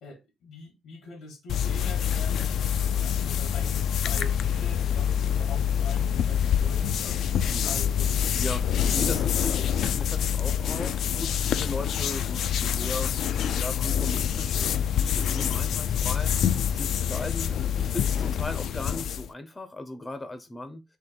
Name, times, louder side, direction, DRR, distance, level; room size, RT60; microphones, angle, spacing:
voice 1, 0.0-8.4, left 3 dB, 90° left, 1.7 m, -44 dB
sound 1, 1.5-19.3, left 9 dB, 70° left, 0.4 m, -26 dB
voice 2, 8.3-13.1 13.5-20.8, left 2 dB, 15° left, 0.5 m, -37 dB
3.8 x 3.0 x 4.3 m
wide cardioid pair, 165°, 0 cm